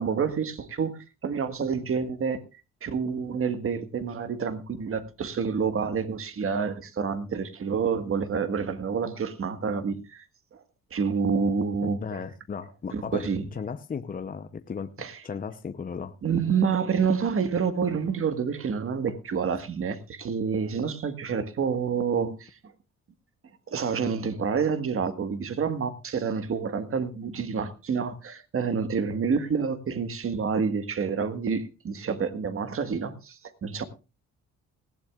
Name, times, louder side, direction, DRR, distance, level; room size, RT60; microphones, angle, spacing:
voice 1, 0.0-2.4 2.8-10.2 10.5-10.6 10.9-12.2 12.9-13.4 15.0-15.2 16.2-22.6 23.7-33.8, right 6 dB, 45° right, 10 dB, 1.5 m, -28 dB
voice 2, 12.0-14.9 15.2-16.1, left 6 dB, 30° left, 9 dB, 0.7 m, -35 dB
19.0 x 15.0 x 2.4 m, 0.29 s
cardioid pair, 90°, 30 cm